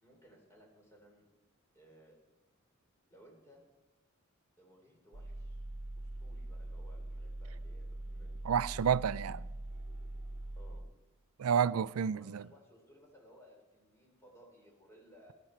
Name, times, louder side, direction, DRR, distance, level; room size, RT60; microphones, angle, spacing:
voice 1, 0.0-1.2 1.7-2.2 3.1-3.6 4.6-5.6 6.0-8.3 10.6-10.8 12.0-15.3, equal, 15° left, 3.2 m, -60 dB
sound 1, 5.1-10.8, right 1 dB, 60° right, 1.2 m, -43 dB
voice 2, 8.4-9.4 11.4-12.4, right 7 dB, 90° right, 0.4 m, -30 dB
18.0 x 12.0 x 4.4 m
head